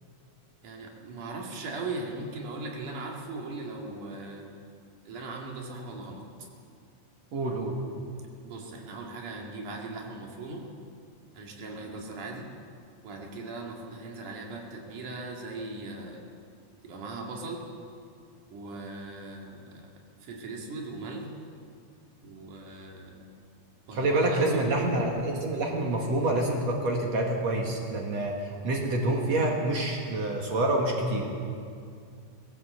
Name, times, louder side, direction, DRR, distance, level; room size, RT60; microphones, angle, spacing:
voice 1, 0.6-4.5 5.1-6.2 8.4-10.6 11.3-12.5 13.0-16.2 16.8-17.6 18.5-19.9 20.2-21.3 22.2-23.2 23.9-24.7, right 3 dB, 80° right, 0 dB, 3.7 m, -39 dB
voice 2, 7.3-7.7 23.9-31.3, right 2 dB, 60° right, 0 dB, 2.8 m, -27 dB
19.0 x 17.5 x 8.0 m, 2.3 s
omnidirectional pair, 3.5 m